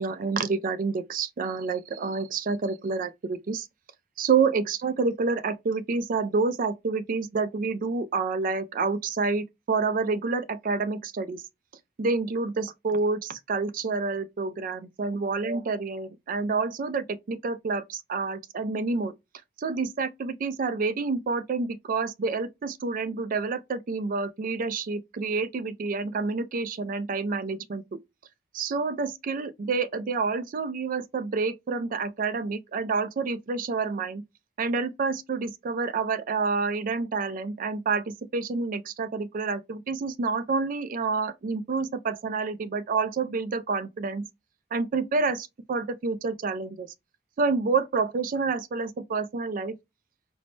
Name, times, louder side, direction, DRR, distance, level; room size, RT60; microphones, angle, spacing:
voice 1, 0.0-3.7 4.2-11.4 12.0-19.1 19.6-28.0 28.5-34.2 34.6-44.3 44.7-46.9 47.4-49.7, right 4 dB, 45° right, 0.4 m, -28 dB
4.5 x 2.1 x 3.0 m
head